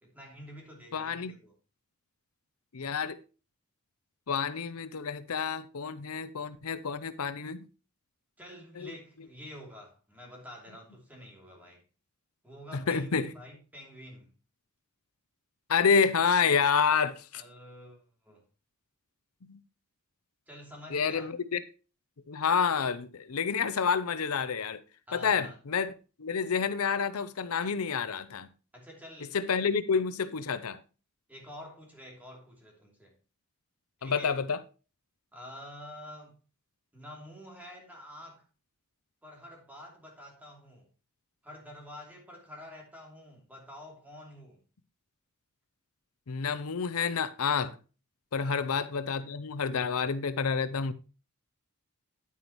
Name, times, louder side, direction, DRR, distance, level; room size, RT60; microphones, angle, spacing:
voice 1, 0.0-1.5 8.4-11.8 12.4-14.3 17.3-18.4 20.5-21.3 25.1-25.6 28.7-29.7 31.3-33.2 34.0-34.4 35.3-36.4 36.9-38.4 39.2-40.9 41.4-44.6 48.4-48.7, left 1 dB, 5° right, 2.9 m, -48 dB
voice 2, 0.9-1.3 2.7-3.2 4.3-7.7 8.8-8.9 12.7-13.3 15.7-17.4 19.4-19.6 20.9-21.6 22.3-24.8 25.1-25.9 26.2-28.5 29.3-30.8 34.0-34.6 46.3-47.8 48.3-50.9, left 6 dB, 80° left, 0.6 m, -29 dB
9.7 x 9.3 x 3.0 m
head